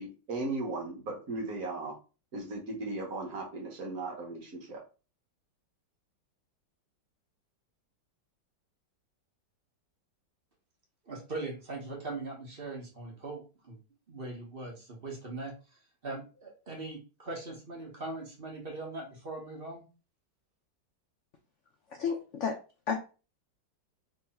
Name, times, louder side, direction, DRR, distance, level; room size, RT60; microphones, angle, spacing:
voice 1, 0.0-2.0 2.3-4.8, right 2 dB, 55° right, 1 dB, 1.5 m, -37 dB
voice 2, 11.0-13.8 14.1-15.5 16.0-19.8, right 2 dB, 35° right, -1 dB, 1.3 m, -40 dB
voice 3, 21.9-22.6 22.9-23.0, left 6 dB, 80° left, 4 dB, 0.6 m, -31 dB
3.5 x 3.1 x 4.2 m, 0.33 s
omnidirectional pair, 2.0 m